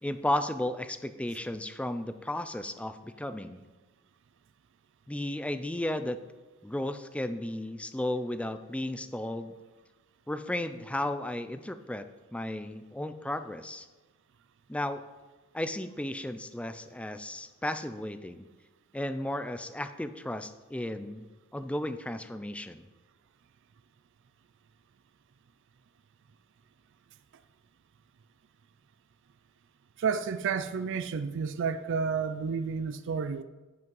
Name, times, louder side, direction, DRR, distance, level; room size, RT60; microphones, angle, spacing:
voice 1, 0.0-3.6 5.1-6.2 6.6-9.5 10.3-12.1 12.3-13.9 14.7-15.0 15.5-18.5 18.9-22.9, left 1 dB, 5° left, 0.4 m, -34 dB
voice 2, 30.0-33.4, right 5 dB, 60° right, 0.4 m, -31 dB
9.4 x 5.6 x 5.3 m
head